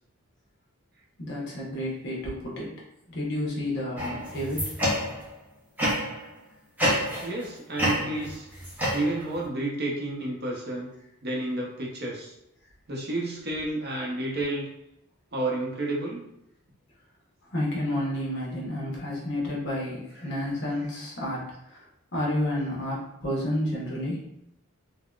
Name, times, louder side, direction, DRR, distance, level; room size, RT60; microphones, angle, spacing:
voice 1, 1.2-2.7 3.1-4.6 17.5-21.4 21.7-21.8 22.1-24.2, left 1 dB, 50° left, -4 dB, 0.9 m, -30 dB
sound 1, 4.0-5.3 5.8-6.3 6.8-7.5 7.8-9.4, equal, 5° right, 0.6 m, -28 dB
voice 2, 7.2-8.5 8.9-10.9 11.2-12.3 12.9-14.7 15.3-16.2 20.2-20.3 20.7-20.9, right 2 dB, 50° right, -3 dB, 0.7 m, -31 dB
3.7 x 2.1 x 2.3 m, 0.82 s
head